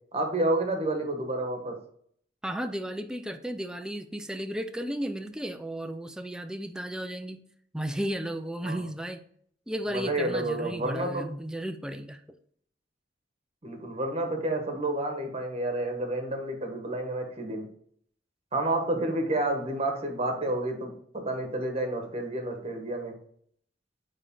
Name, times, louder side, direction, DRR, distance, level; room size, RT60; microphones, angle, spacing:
voice 1, 0.1-1.8 8.6-8.8 9.9-11.3 13.6-17.6 18.5-23.1, right 1 dB, 35° right, 3 dB, 1.4 m, -30 dB
voice 2, 2.4-7.4 7.7-9.2 9.7-12.4, equal, 5° right, 7 dB, 0.4 m, -34 dB
8.9 x 3.3 x 3.8 m, 0.62 s
head